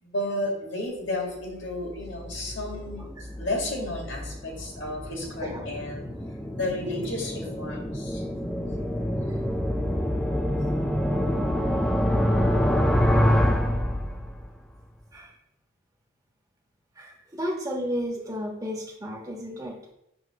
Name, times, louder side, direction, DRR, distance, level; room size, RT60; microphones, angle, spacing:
voice 1, 0.0-3.1 3.4-6.0 6.5-8.2, left 1 dB, 60° left, -1 dB, 2.1 m, -32 dB
sound 1, 1.6-14.6, equal, ahead, 0.5 m, -27 dB
voice 2, 17.0-19.7, equal, 15° right, -1 dB, 1.4 m, -33 dB
8.0 x 3.1 x 5.8 m, 0.81 s
head